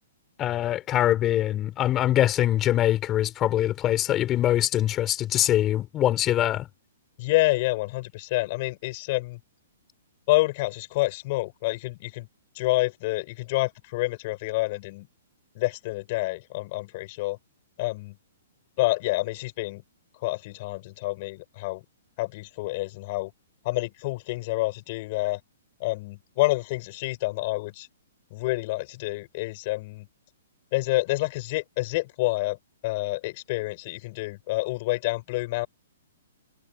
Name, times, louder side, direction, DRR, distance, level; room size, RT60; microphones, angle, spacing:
voice 1, 0.4-6.7, left 13 dB, 25° left, 4.7 m, -23 dB
voice 2, 7.2-9.4 10.3-12.3 12.6-15.1 15.6-17.4 17.8-18.2 18.8-19.8 20.2-21.8 22.2-23.3 23.6-25.4 25.8-27.9 28.3-30.1 30.7-32.6 32.8-35.7, left 21 dB, 45° left, 5.6 m, -28 dB
hypercardioid pair, 125°, 0 cm